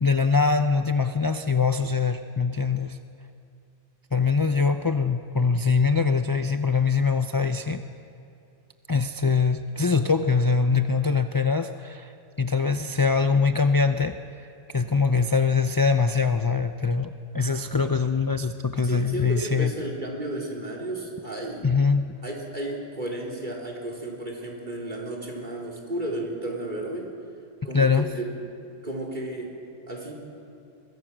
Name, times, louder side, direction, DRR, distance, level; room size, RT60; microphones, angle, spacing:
voice 1, 0.0-3.0 4.1-7.8 8.9-12.1 12.4-14.2 14.7-17.1 17.3-19.7 21.6-22.1 27.7-28.1, left 5 dB, 25° left, 8 dB, 0.5 m, -23 dB
voice 2, 18.8-21.7 22.2-27.1 27.6-28.3 28.8-29.5 29.9-30.1, right 1 dB, 45° right, 0 dB, 4.3 m, -33 dB
24.5 x 23.0 x 6.2 m, 2.6 s
omnidirectional pair, 1.1 m